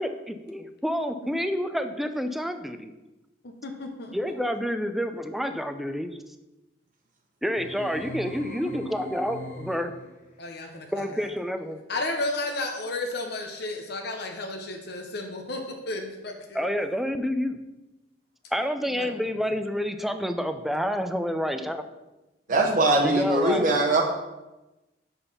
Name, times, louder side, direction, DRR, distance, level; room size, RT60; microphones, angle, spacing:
voice 1, 0.0-2.9 4.1-6.2 7.4-9.9 10.9-11.8 16.5-17.6 18.5-21.8 23.0-23.7, equal, ahead, 8 dB, 0.5 m, -29 dB
voice 2, 3.4-4.1 10.4-11.3 11.9-16.7 18.9-19.2 22.5-22.6, left 2 dB, 65° left, 3 dB, 0.9 m, -33 dB
sound 1, 7.6-10.2, left 1 dB, 45° left, 1.3 m, -40 dB
voice 3, 22.5-24.0, right 2 dB, 50° right, 1 dB, 1.0 m, -21 dB
6.2 x 5.5 x 5.6 m, 1.0 s
head